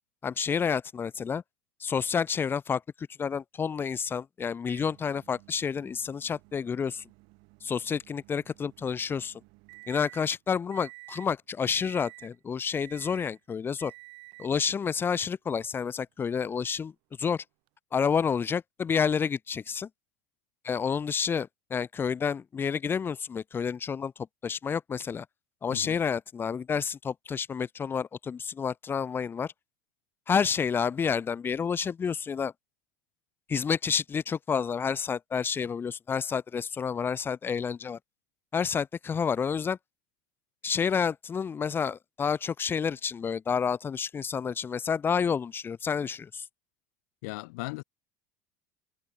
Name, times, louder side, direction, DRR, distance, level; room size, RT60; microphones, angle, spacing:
voice 1, 0.2-1.4 1.8-7.0 7.6-9.4 9.9-13.9 14.4-16.9 17.2-17.4 17.9-19.9 20.6-24.1 24.4-25.2 25.6-29.5 30.3-32.5 33.5-38.0 38.5-39.8 40.6-46.4, left 6 dB, 25° left, 0.8 m, -29 dB
Microwave oven, 4.7-10.3 10.7-11.3 11.7-12.4 12.8-13.4 13.8-14.6 15.6-15.7 17.7-17.8, right 29 dB, 70° right, 5.5 m, -52 dB
voice 2, 47.2-47.8, left 26 dB, 80° left, 1.4 m, -37 dB
supercardioid pair, 110°, 9 cm